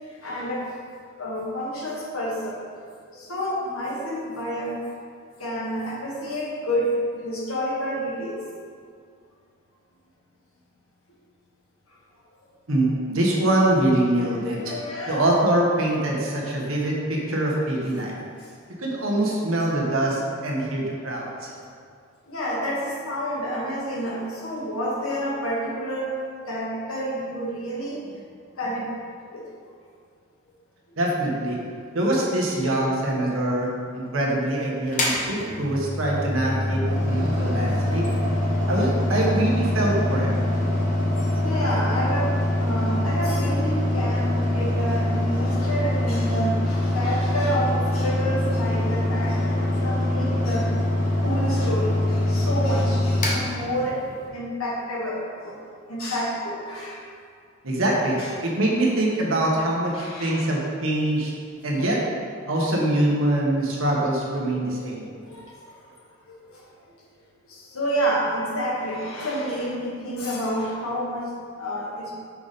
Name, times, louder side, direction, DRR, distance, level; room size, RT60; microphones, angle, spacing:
voice 1, 0.1-0.7 1.2-2.6 3.1-4.8 5.4-8.4 14.2-15.3 18.4-18.5 22.3-26.2 26.5-28.2 28.6-28.9 29.3-29.5 41.2-50.8 51.2-54.0 54.3-55.6 55.9-57.1 58.1-58.3 59.9-60.5 65.2-65.8 66.3-66.7 67.5-71.3 71.6-72.1, equal, 85° left, -4 dB, 1.5 m, -29 dB
voice 2, 12.7-14.7 15.1-18.1 18.8-21.5 31.0-31.6 31.9-33.7 33.9-38.0 38.7-40.4 57.6-58.2 58.4-61.3 61.6-62.0 62.5-65.0, right 1 dB, 75° right, -3 dB, 1.3 m, -24 dB
Mechanical fan, 34.9-54.3, left 1 dB, 35° left, 0.9 m, -24 dB
5.9 x 5.1 x 4.1 m, 2.2 s
head